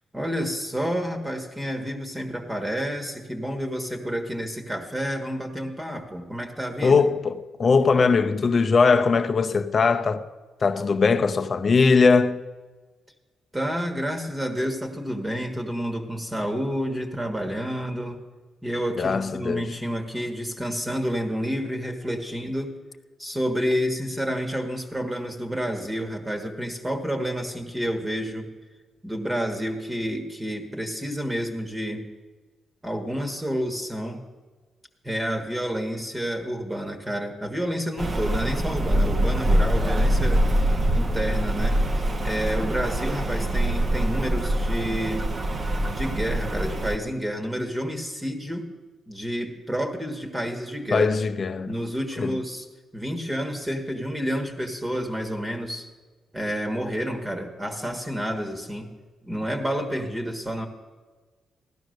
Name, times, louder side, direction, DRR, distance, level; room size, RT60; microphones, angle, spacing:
voice 1, 0.1-7.0 13.5-18.2 18.6-22.7 23.2-28.5 29.0-32.1 32.8-34.2 35.0-40.5 40.9-41.8 42.2-45.3 45.9-48.7 49.1-51.2 51.6-52.7 52.9-55.9 56.3-58.9 59.2-60.7, equal, 10° right, 1.6 m, -29 dB
voice 2, 6.8-10.3 10.6-12.4 19.0-19.7 50.9-51.7 52.2-52.3, left 4 dB, 40° left, 0.8 m, -20 dB
Rain, 38.0-47.0, right 1 dB, 30° right, 1.0 m, -24 dB
16.0 x 12.0 x 6.6 m
cardioid pair, 105°, 0 cm